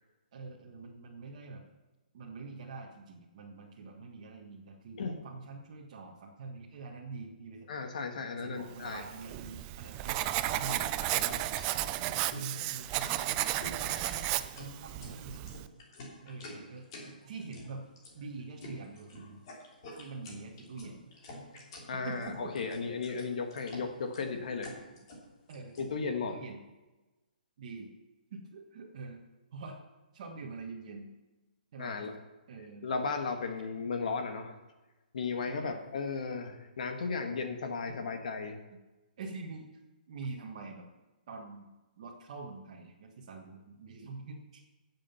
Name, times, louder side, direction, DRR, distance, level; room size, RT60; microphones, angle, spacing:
voice 1, 0.3-1.6 2.1-7.7 8.3-11.5 12.0-15.4 16.2-16.9 17.3-17.8 18.1-19.4 19.9-21.0 21.9-22.5 25.5-25.7 26.0-26.6 27.6-27.9 28.3-29.2 29.5-29.8 30.1-31.1 31.7-31.9 32.5-32.9 35.5-35.7 37.1-37.3 38.7-38.8 39.2-39.7 40.1-40.9 41.3-41.7 42.0-44.6, right 4 dB, 40° right, -3 dB, 1.6 m, -45 dB
voice 2, 7.7-9.0 21.9-24.7 25.8-26.4 31.8-32.2 32.8-34.6 35.1-38.6, left 4 dB, 55° left, 5 dB, 1.7 m, -35 dB
Writing, 8.9-15.7, right 15 dB, 15° right, 0.3 m, -33 dB
sound 1, 9.9-25.9, left 1 dB, 30° left, 3.3 m, -48 dB
15.5 x 7.6 x 5.8 m, 1.1 s
hypercardioid pair, 170°, 5 cm